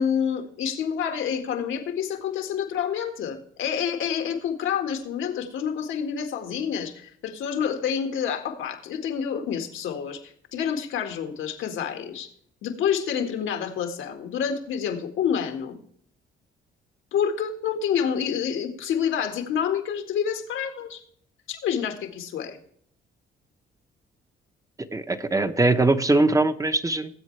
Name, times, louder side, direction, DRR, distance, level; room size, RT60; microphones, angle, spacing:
voice 1, 0.0-12.3 12.6-15.8 17.1-21.0 21.5-22.6, left 8 dB, 80° left, 5 dB, 1.8 m, -28 dB
voice 2, 24.9-27.1, right 2 dB, 15° right, 9 dB, 0.9 m, -21 dB
19.5 x 8.2 x 3.3 m, 0.63 s
cardioid pair, 90°, 20 cm